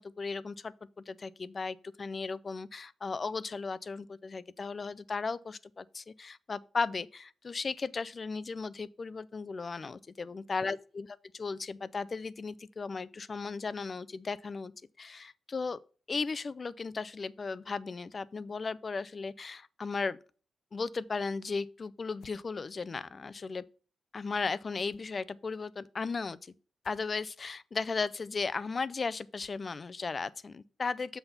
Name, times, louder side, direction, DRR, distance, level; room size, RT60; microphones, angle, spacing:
voice 1, 0.0-11.1 11.3-14.7 15.0-15.8 16.1-20.2 20.7-23.6 24.1-26.5 26.8-31.2, left 4 dB, 30° left, 0.4 m, -36 dB
sound 1, 22.2-22.5 24.8-25.3 26.8-27.1 29.4-29.9, left 8 dB, 80° left, 0.6 m, -61 dB
7.8 x 4.0 x 5.6 m
wide cardioid pair, 170°, 0 cm